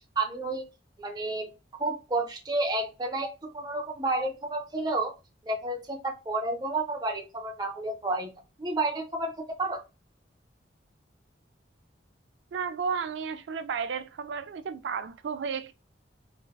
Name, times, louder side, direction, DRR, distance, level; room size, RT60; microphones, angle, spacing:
voice 1, 0.2-0.7 1.0-1.5 1.8-5.1 5.4-9.8, right 2 dB, 20° right, 0.5 m, -31 dB
voice 2, 12.5-15.7, right 6 dB, 75° right, 0.3 m, -33 dB
3.4 x 2.1 x 2.3 m
head